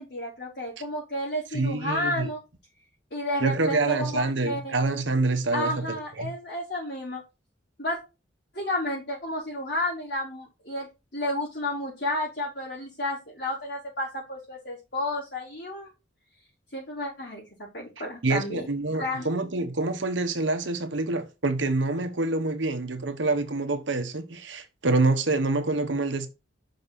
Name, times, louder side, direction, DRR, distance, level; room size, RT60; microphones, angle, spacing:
voice 1, 0.0-2.4 3.1-4.8 5.5-7.2 7.8-8.0 8.5-10.9 11.1-15.9 16.7-17.5 17.7-18.6 19.0-19.3, left 1 dB, 60° left, 4.2 m, -31 dB
voice 2, 1.5-2.3 3.4-6.3 18.2-26.3, right 2 dB, 75° right, 1.1 m, -26 dB
6.1 x 5.3 x 4.1 m
head